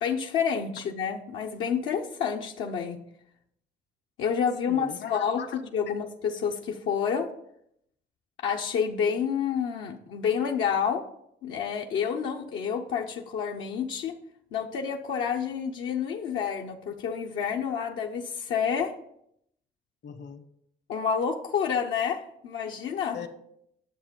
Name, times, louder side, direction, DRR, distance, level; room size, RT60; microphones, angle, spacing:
voice 1, 0.0-3.0 4.2-5.4 5.7-7.3 8.4-11.0 11.4-14.1 14.5-18.9 20.9-23.2, left 7 dB, 85° left, 1 dB, 0.9 m, -29 dB
voice 2, 4.6-5.6 20.0-20.4 23.1-23.3, left 7 dB, 60° left, 9 dB, 1.2 m, -39 dB
9.9 x 7.1 x 5.2 m, 0.74 s
cardioid pair, 90°, 20 cm